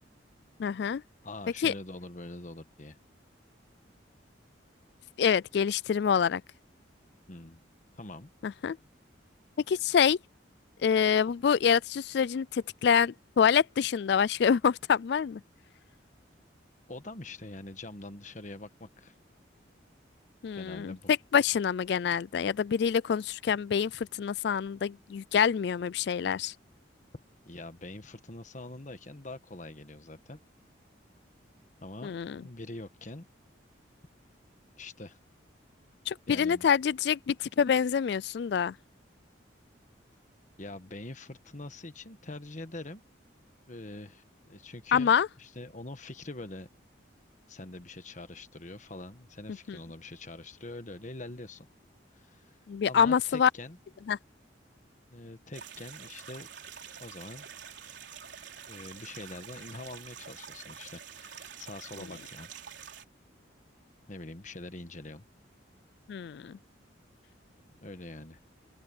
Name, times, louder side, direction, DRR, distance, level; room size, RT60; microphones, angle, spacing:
voice 1, 0.6-1.0 1.6-1.7 5.2-6.4 8.4-8.8 9.7-10.2 10.8-15.4 20.4-26.5 32.0-32.4 36.1-38.7 44.9-45.3 49.7-49.8 52.7-53.5 54.1-54.2 62.0-62.1 66.1-66.6, left 7 dB, 60° left, 0.3 m, -26 dB
voice 2, 1.2-3.0 7.3-7.6 7.9-8.3 16.9-19.1 20.5-21.1 27.4-30.4 31.8-32.1 32.4-33.3 34.8-35.2 36.3-36.7 40.6-43.0 43.7-45.1 45.4-46.7 47.5-51.7 52.1-52.6 52.9-53.8 55.1-56.5 57.0-57.5 58.7-62.5 64.1-65.2 67.8-68.4, left 2 dB, 40° left, 1.4 m, -44 dB
sound 1, 55.5-63.0, right 8 dB, 70° right, 3.9 m, -47 dB
open air
head